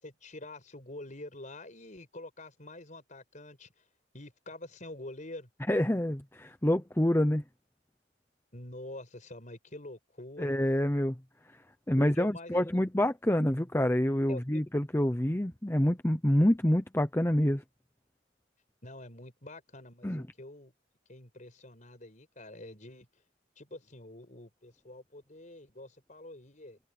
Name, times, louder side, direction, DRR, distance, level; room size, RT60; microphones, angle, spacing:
voice 1, 0.0-3.8 4.1-5.5 8.5-10.5 12.0-12.6 14.3-14.6 18.8-20.7 21.1-23.1 23.6-26.8, left 1 dB, 40° left, 5.4 m, -46 dB
voice 2, 5.7-7.4 10.4-11.2 11.9-17.6 20.0-20.2, left 1 dB, 15° left, 0.8 m, -27 dB
head